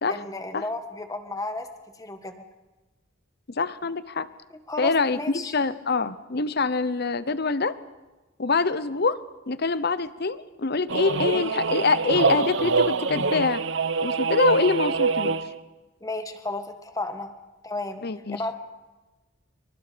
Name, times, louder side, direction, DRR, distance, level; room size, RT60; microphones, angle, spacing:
voice 1, 0.1-1.7 2.0-2.3 4.7-5.5 16.0-17.3 17.6-18.0 18.3-18.5, left 2 dB, 15° left, 7 dB, 1.7 m, -33 dB
voice 2, 3.6-4.3 4.8-7.8 8.4-9.2 9.5-13.6 14.0-15.3 18.0-18.4, left 4 dB, 50° left, 15 dB, 0.9 m, -25 dB
sound 1, 10.9-15.6, right 4 dB, 65° right, 0.9 m, -25 dB
26.0 x 24.5 x 5.2 m, 1.1 s
head